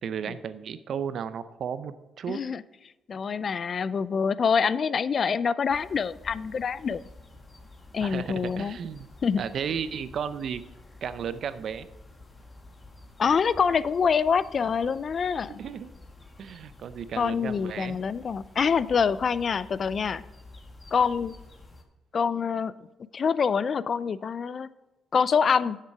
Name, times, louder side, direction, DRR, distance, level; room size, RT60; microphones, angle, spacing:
voice 1, 0.0-2.4 8.0-9.1 9.4-10.6 11.0-11.9 15.6-15.9 16.4-18.0, right 7 dB, 60° right, 13 dB, 0.6 m, -34 dB
voice 2, 2.3-2.6 3.1-7.0 7.9-8.8 9.2-9.4 13.2-15.6 17.2-20.2 20.9-21.3 22.1-22.7 23.1-24.7 25.1-25.8, left 6 dB, 45° left, 17 dB, 0.4 m, -25 dB
sound 1, 5.7-21.8, left 2 dB, 25° left, 1.5 m, -50 dB
10.5 x 6.7 x 4.7 m, 1.1 s
cardioid pair, 90°, 0 cm